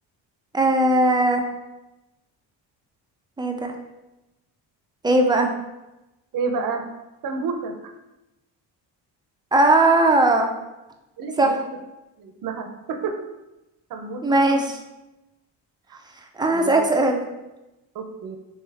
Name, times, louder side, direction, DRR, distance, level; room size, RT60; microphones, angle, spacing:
voice 1, 0.5-1.4 3.4-3.7 5.0-5.5 9.5-10.5 11.4-11.5 14.2-14.8 16.4-17.3, right 2 dB, 10° right, 3 dB, 0.4 m, -18 dB
voice 2, 6.3-6.9 7.2-7.9 11.2-11.6 12.2-13.2 13.9-14.7 15.9-16.0 16.5-16.8 17.9-18.4, right 4 dB, 50° right, 5 dB, 0.6 m, -30 dB
3.4 x 3.1 x 3.3 m, 0.98 s
cardioid pair, 80°, 45 cm